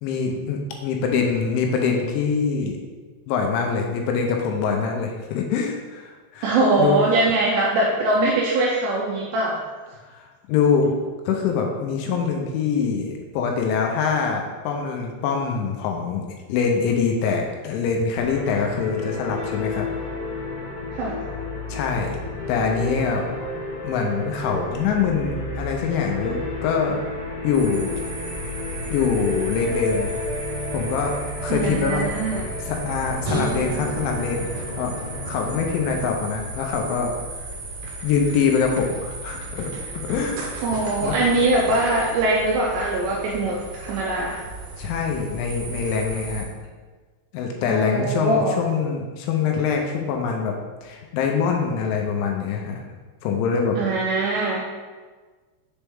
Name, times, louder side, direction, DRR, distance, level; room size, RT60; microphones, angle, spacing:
voice 1, 0.0-2.8 3.3-7.0 10.1-10.9 11.3-16.2 16.5-19.9 21.7-22.2 22.5-23.3 23.8-27.0 27.4-28.0 28.9-30.1 30.7-31.1 31.4-32.1 32.6-34.9 35.3-37.1 38.0-40.4 41.0-41.1 44.8-46.5 47.3-50.5 50.8-52.8 53.2-53.8, left 5 dB, 80° left, 2 dB, 2.9 m, -24 dB
voice 2, 6.4-9.6 20.9-21.3 31.5-32.5 40.6-44.4 47.7-48.6 53.8-54.7, right 2 dB, 90° right, -3 dB, 2.5 m, -22 dB
sound 1, 18.2-36.1, left 2 dB, 60° left, 2.1 m, -32 dB
sound 2, 27.5-46.4, right 2 dB, 70° right, 2.6 m, -35 dB
sound 3, 33.2-35.6, right 3 dB, 55° right, 1.5 m, -32 dB
7.1 x 4.4 x 3.5 m, 1.4 s
omnidirectional pair, 5.6 m